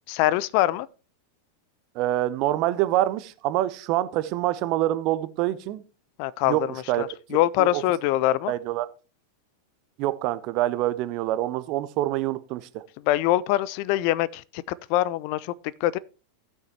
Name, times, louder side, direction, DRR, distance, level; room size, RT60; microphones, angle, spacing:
voice 1, 0.1-0.9 6.2-8.5 13.0-14.6 14.9-15.5 15.8-16.0, left 14 dB, 45° left, 0.3 m, -24 dB
voice 2, 1.9-5.8 6.5-6.6 6.9-7.1 7.6-7.8 8.5-8.9 10.0-12.8, right 14 dB, 40° right, 0.6 m, -26 dB
16.5 x 6.4 x 2.8 m
figure-of-eight pair, 90°, 0 cm